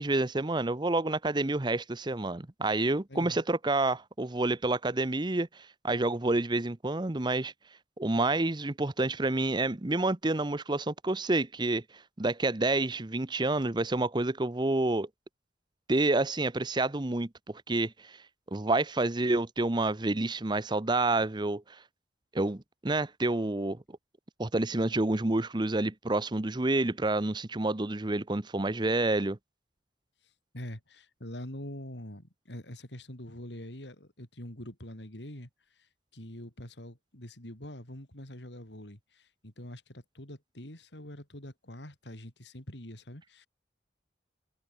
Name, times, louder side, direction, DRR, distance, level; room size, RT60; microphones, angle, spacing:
voice 1, 0.0-7.5 8.0-11.8 12.2-15.1 15.9-18.2 18.5-21.8 22.3-23.8 24.4-29.4, right 2 dB, 25° right, 0.8 m, -28 dB
voice 2, 3.1-3.4 30.5-43.5, left 1 dB, 75° left, 5.7 m, -44 dB
head